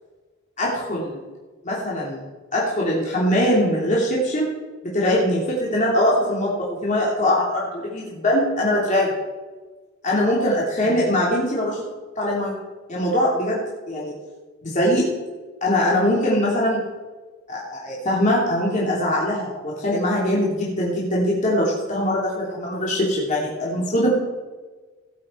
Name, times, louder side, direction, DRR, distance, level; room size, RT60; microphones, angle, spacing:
voice 1, 0.6-1.2 1.6-2.2 2.5-4.5 4.9-9.1 10.0-11.8 12.2-12.5 12.9-14.1 14.6-15.0 15.6-16.8 17.5-24.1, left 1 dB, 35° left, -5 dB, 3.1 m, -22 dB
17.5 x 8.4 x 4.6 m, 1.3 s
head